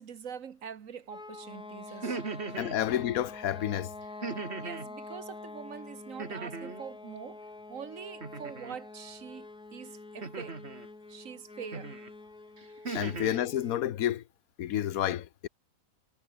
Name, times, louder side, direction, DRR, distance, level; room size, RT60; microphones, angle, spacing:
voice 1, 0.0-2.2 2.5-2.6 4.6-7.4 7.7-10.6 11.1-11.9, right 7 dB, 65° right, 1.6 m, -44 dB
sound 1, 1.1-13.9, left 3 dB, 90° left, 5.2 m, -46 dB
sound 2, 1.9-2.8 4.2-4.9 6.2-6.9 8.2-8.8 10.2-10.9 11.7-12.1 12.6-13.4, right 4 dB, 45° right, 2.5 m, -38 dB
voice 2, 2.6-3.9 12.9-14.2 14.6-15.5, left 11 dB, 75° left, 1.3 m, -30 dB
omnidirectional pair, 1.5 m